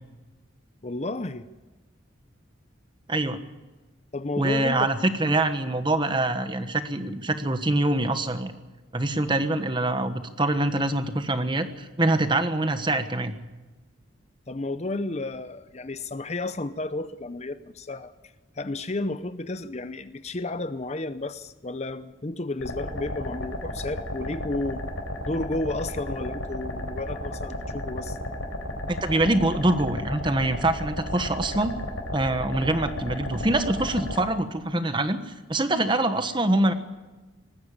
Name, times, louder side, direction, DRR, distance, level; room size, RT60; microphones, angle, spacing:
voice 1, 0.8-1.5 4.1-4.9 5.2-5.4 14.5-18.1 18.6-24.9 25.2-28.2, left 2 dB, 35° left, 12 dB, 0.7 m, -32 dB
voice 2, 4.4-8.5 8.9-13.3 28.9-31.7 32.1-36.7, right 2 dB, 25° right, 9 dB, 1.2 m, -24 dB
sound 1, 22.6-34.2, left 1 dB, 85° left, 4.1 m, -33 dB
19.5 x 15.0 x 8.7 m, 1.2 s
head